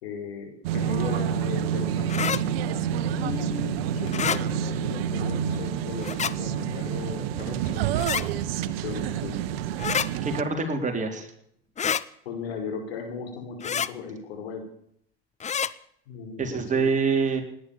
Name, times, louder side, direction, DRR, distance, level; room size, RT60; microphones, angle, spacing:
voice 1, 0.0-2.5 3.2-8.3 8.8-9.4 12.3-14.6 16.1-16.8, left 5 dB, 80° left, 4 dB, 5.6 m, -37 dB
sound 1, 0.6-10.4, right 9 dB, 75° right, 1.2 m, -28 dB
sound 2, 2.1-2.4 4.1-4.4 6.0-6.3 8.0-8.2 9.8-10.1 11.8-12.0 13.6-13.9 15.4-15.7, left 7 dB, 25° left, 0.8 m, -27 dB
voice 2, 10.2-11.3 16.4-17.4, right 4 dB, 25° right, 4 dB, 4.0 m, -25 dB
17.5 x 11.0 x 7.1 m, 0.68 s
hypercardioid pair, 90°, 30 cm